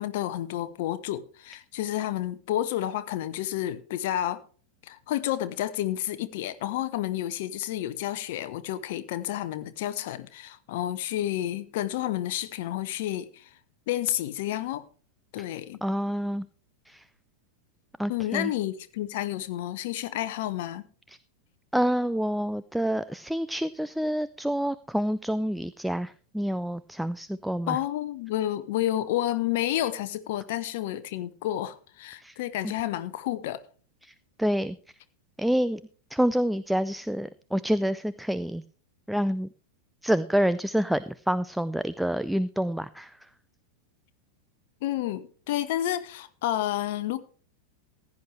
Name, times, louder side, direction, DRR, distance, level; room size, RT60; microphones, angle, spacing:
voice 1, 0.0-4.4 4.8-13.5 13.9-14.8 15.3-15.8 18.1-20.8 27.7-33.6 44.8-47.2, left 13 dB, 50° left, 0.8 m, -30 dB
voice 2, 15.8-16.5 16.9-17.0 18.0-18.5 21.1-21.2 21.7-27.8 32.2-32.4 32.6-32.7 34.0-34.1 34.4-34.8 35.4-35.8 36.1-38.6 39.1-39.5 40.0-43.2, equal, ahead, 0.4 m, -27 dB
15.5 x 10.5 x 3.3 m
figure-of-eight pair, 90°, 0 cm